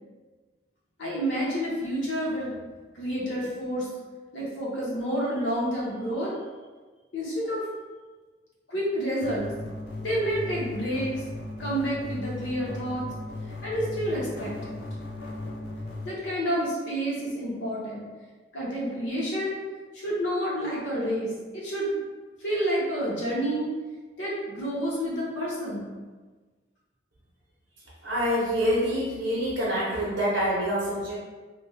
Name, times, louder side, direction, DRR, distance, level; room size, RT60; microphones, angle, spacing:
voice 1, 1.0-2.6 2.9-3.9 4.3-6.3 7.1-7.6 8.7-9.5 9.9-11.2 11.6-13.1 13.6-14.7 16.0-18.1 18.5-19.6 19.9-22.0 22.4-23.7 24.2-25.9, equal, 90° left, -5 dB, 0.9 m, -29 dB
sound 1, 9.2-16.1, left 2 dB, 60° left, 0.5 m, -37 dB
voice 2, 28.0-31.2, equal, 70° right, -8 dB, 0.8 m, -26 dB
2.5 x 2.2 x 3.2 m, 1.3 s
head